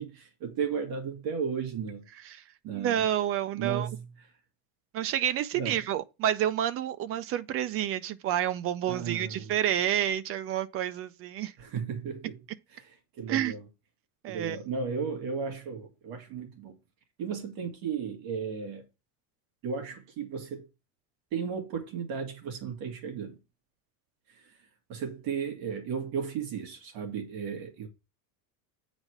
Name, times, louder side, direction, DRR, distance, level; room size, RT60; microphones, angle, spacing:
voice 1, 0.0-2.0 2.6-3.0 3.6-4.0 5.6-5.8 8.9-9.5 11.6-12.4 12.7-12.9 13.2-13.6 14.3-16.7 17.2-18.8 19.6-20.7 21.3-23.4 24.3-24.5 24.9-27.9, right 6 dB, 50° right, 2.0 m, -34 dB
voice 2, 2.7-3.9 4.9-11.5 13.3-13.5 14.2-14.6, right 11 dB, 35° right, 0.4 m, -29 dB
8.9 x 4.1 x 4.7 m
cardioid pair, 155°, 45 cm